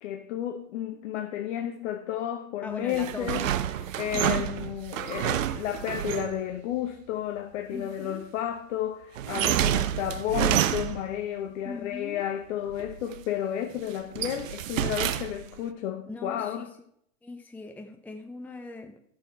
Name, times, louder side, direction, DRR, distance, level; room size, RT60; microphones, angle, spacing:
voice 1, 0.0-3.5 4.0-16.7, left 11 dB, 70° left, 0.9 m, -32 dB
voice 2, 2.6-3.6 4.1-4.5 7.7-8.3 11.6-12.3 16.1-16.7 17.2-19.0, left 2 dB, 5° left, 0.6 m, -41 dB
sound 1, 2.9-6.4 9.2-11.2 12.7-13.3 13.7-15.6, right 11 dB, 80° right, 0.7 m, -29 dB
11.0 x 6.6 x 4.6 m
hypercardioid pair, 110°, 38 cm